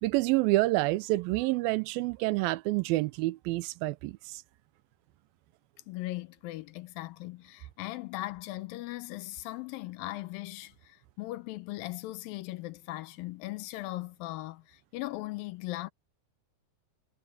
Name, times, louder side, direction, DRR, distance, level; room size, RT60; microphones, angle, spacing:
voice 1, 0.0-4.4, right 19 dB, 85° right, 2.5 m, -28 dB
voice 2, 5.9-15.9, left 18 dB, 90° left, 2.4 m, -39 dB
omnidirectional pair, 4.2 m